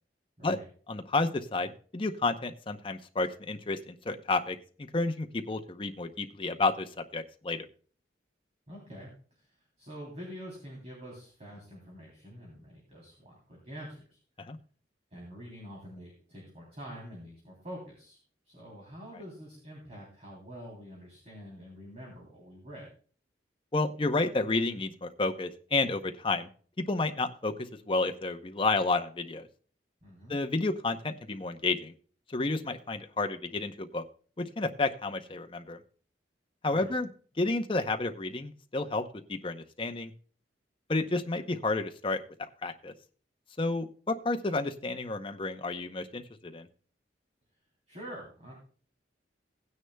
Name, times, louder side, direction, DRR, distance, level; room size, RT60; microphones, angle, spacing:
voice 1, 0.9-4.6 4.9-7.7 14.4-14.6 23.7-26.5 26.9-27.5 27.9-29.5 30.3-31.9 32.3-34.0 34.4-35.8 36.6-37.1 37.4-39.0 39.3-40.1 40.9-42.2 42.6-42.9 43.6-46.7, left 3 dB, 30° left, 6 dB, 0.7 m, -31 dB
voice 2, 8.7-9.1 9.4-9.5 9.8-14.2 15.1-18.2 18.4-22.9 30.0-30.4 36.7-36.9 47.9-48.5, equal, 40° right, -3 dB, 3.2 m, -46 dB
17.0 x 9.6 x 2.2 m, 0.43 s
head